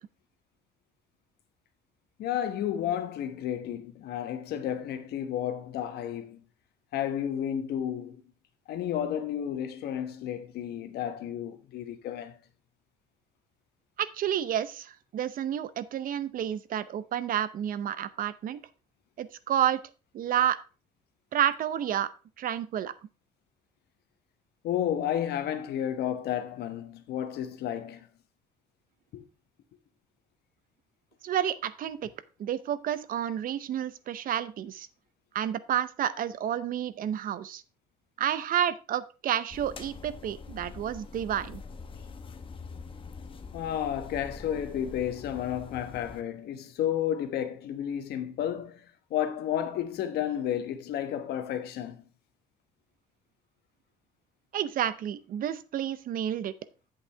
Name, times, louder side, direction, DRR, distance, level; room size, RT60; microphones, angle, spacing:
voice 1, 2.2-6.4 6.9-8.2 8.7-12.4 24.6-28.1 29.1-29.2 43.5-52.0, left 10 dB, 75° left, 1.2 m, -32 dB
voice 2, 14.0-18.6 19.2-19.8 20.1-20.6 21.3-22.1 22.4-22.9 31.2-32.1 32.4-34.9 35.3-37.6 38.2-41.6 54.5-56.5, right 10 dB, 55° right, 0.7 m, -30 dB
sound 1, 39.5-46.2, left 4 dB, 30° left, 0.9 m, -44 dB
8.5 x 7.8 x 3.4 m
cardioid pair, 110°, 17 cm